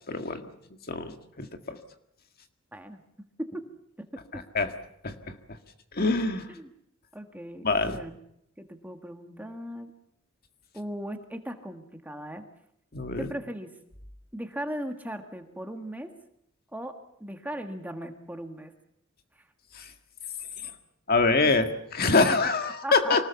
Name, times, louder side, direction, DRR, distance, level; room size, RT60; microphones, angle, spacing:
voice 1, 0.1-0.5 0.9-1.8 4.3-4.7 5.0-5.6 5.9-6.5 7.6-8.0 12.9-13.3 19.7-19.9 20.6-20.7 21.1-23.3, left 3 dB, 45° left, 7 dB, 1.8 m, -25 dB
voice 2, 4.0-4.4 6.5-6.7 7.1-8.2 8.6-9.9 10.7-12.4 13.2-13.7 14.3-16.1 16.7-16.9 17.2-18.7 21.4-21.6 22.8-23.2, equal, 10° right, 6 dB, 1.6 m, -38 dB
25.0 x 19.0 x 7.1 m, 0.74 s
head